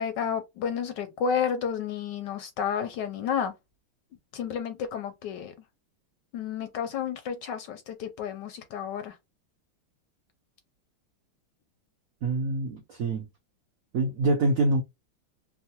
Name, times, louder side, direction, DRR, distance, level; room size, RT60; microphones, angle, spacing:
voice 1, 0.0-3.5 4.3-5.5 6.3-9.2, left 7 dB, 75° left, 1.0 m, -31 dB
voice 2, 12.2-13.3 13.9-14.8, right 2 dB, 85° right, 0.7 m, -25 dB
3.6 x 2.0 x 2.7 m
omnidirectional pair, 2.2 m